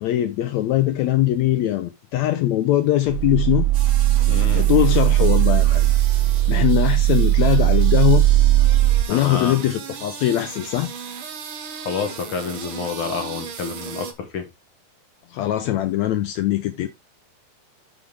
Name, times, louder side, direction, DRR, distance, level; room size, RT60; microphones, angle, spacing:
voice 1, 0.0-3.7 4.5-5.9 6.5-8.3 9.1-10.9 15.3-16.9, left 14 dB, 80° left, 1.6 m, -21 dB
sound 1, 3.1-9.0, right 15 dB, 90° right, 2.3 m, -17 dB
sound 2, 3.7-14.1, right 7 dB, 55° right, 1.6 m, -37 dB
voice 2, 4.3-4.7 9.1-9.6 11.7-14.5, left 5 dB, 60° left, 1.4 m, -28 dB
8.8 x 7.1 x 3.2 m
omnidirectional pair, 3.9 m